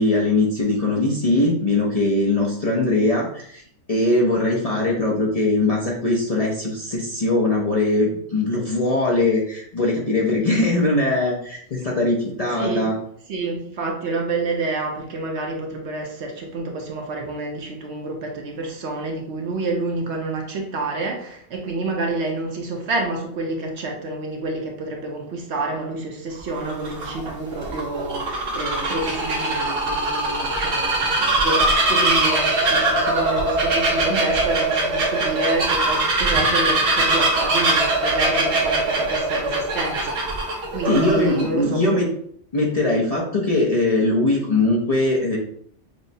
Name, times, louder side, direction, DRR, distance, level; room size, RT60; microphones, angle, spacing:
voice 1, 0.0-3.6 3.9-12.9 40.9-42.1 42.5-45.4, left 2 dB, 45° left, -4 dB, 0.5 m, -21 dB
voice 2, 13.3-42.0, right 2 dB, 65° right, 1 dB, 1.0 m, -28 dB
Bird vocalization bird call bird song, 26.4-41.4, right 2 dB, 80° right, 1.4 m, -21 dB
6.1 x 2.1 x 2.7 m, 0.64 s
omnidirectional pair, 1.3 m